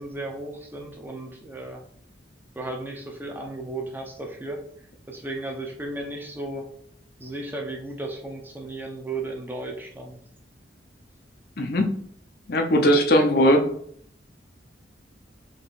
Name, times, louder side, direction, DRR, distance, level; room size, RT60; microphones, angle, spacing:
voice 1, 0.0-1.8 2.6-4.6 5.1-6.6 7.2-10.2, right 2 dB, 10° right, 1 dB, 0.6 m, -34 dB
voice 2, 11.6-11.9 12.5-13.6, equal, 55° left, 4 dB, 0.6 m, -19 dB
3.8 x 3.5 x 4.0 m, 0.63 s
head